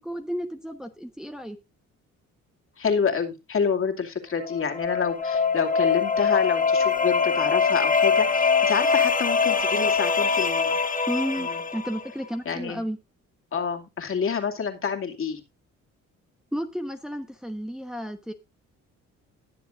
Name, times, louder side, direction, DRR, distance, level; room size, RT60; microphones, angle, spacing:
voice 1, 0.0-1.6 11.1-13.0 16.5-18.3, equal, ahead, 1.1 m, -32 dB
voice 2, 2.8-10.8 11.4-11.6 12.4-12.8 13.5-15.4, left 6 dB, 45° left, 2.5 m, -28 dB
sound 1, 4.3-12.1, left 5 dB, 25° left, 1.8 m, -23 dB
20.0 x 7.1 x 2.5 m
cardioid pair, 90°, 30 cm